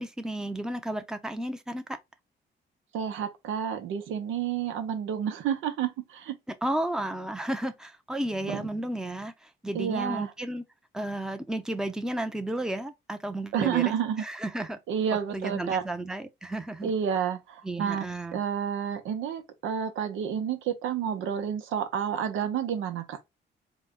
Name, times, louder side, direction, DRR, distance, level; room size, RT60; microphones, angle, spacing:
voice 1, 0.0-1.8 6.6-9.3 9.6-10.6 10.9-13.9 14.2-14.8 15.3-16.9 17.6-18.4, right 1 dB, 5° right, 0.6 m, -33 dB
voice 2, 2.9-6.4 8.5-8.7 9.7-10.3 13.5-14.2 14.9-15.8 16.8-23.2, right 8 dB, 85° right, 0.9 m, -30 dB
4.0 x 2.2 x 3.7 m
cardioid pair, 90°, 20 cm